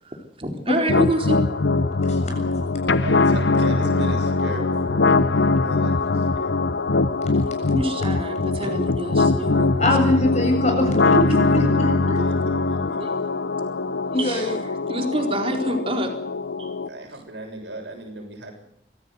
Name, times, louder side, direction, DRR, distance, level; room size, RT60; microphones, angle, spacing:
voice 1, 0.4-1.4 7.7-10.2 13.0-13.1 14.2-14.5 14.9-16.1 16.6-16.7, right 1 dB, 30° right, 3 dB, 4.1 m, -27 dB
sound 1, 0.9-16.9, left 3 dB, 85° left, 0.9 m, -22 dB
voice 2, 3.0-6.7 12.0-13.1 16.9-18.6, right 2 dB, 80° right, 3 dB, 6.8 m, -37 dB
voice 3, 9.8-12.2 14.1-14.5, left 1 dB, 40° left, 3 dB, 7.2 m, -22 dB
24.0 x 16.0 x 8.2 m, 0.73 s
head